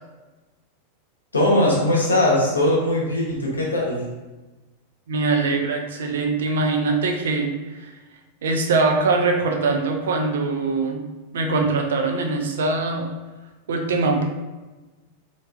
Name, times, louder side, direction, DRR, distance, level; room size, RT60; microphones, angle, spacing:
voice 1, 1.3-4.0, left 1 dB, 75° left, -3 dB, 0.7 m, -20 dB
voice 2, 5.1-7.5 7.8-7.9 8.4-11.0 11.3-13.1 13.7-14.2, right 3 dB, 60° right, 3 dB, 0.4 m, -22 dB
3.1 x 2.4 x 2.3 m, 1.2 s
figure-of-eight pair, 90°, 0 cm